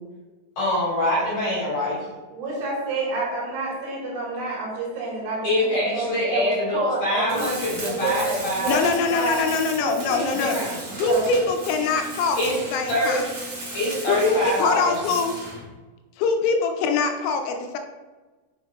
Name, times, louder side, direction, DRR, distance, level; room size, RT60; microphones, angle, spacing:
voice 1, 0.6-2.0 5.4-8.9 10.3-10.8 12.4-12.6 12.9-13.3 13.7-15.0, left 1 dB, 50° left, -7 dB, 2.4 m, -24 dB
voice 2, 2.3-7.5 7.9-8.8 9.1-9.5 9.8-10.6 11.0-11.3, right 3 dB, 70° right, -5 dB, 3.8 m, -29 dB
Tools, 7.3-15.7, right 2 dB, 45° right, 1.9 m, -36 dB
voice 3, 8.7-10.6 11.0-13.3 14.1-15.4 16.2-17.8, left 4 dB, 85° left, 5 dB, 2.9 m, -23 dB
7.0 x 6.3 x 2.4 m, 1.3 s
omnidirectional pair, 5.4 m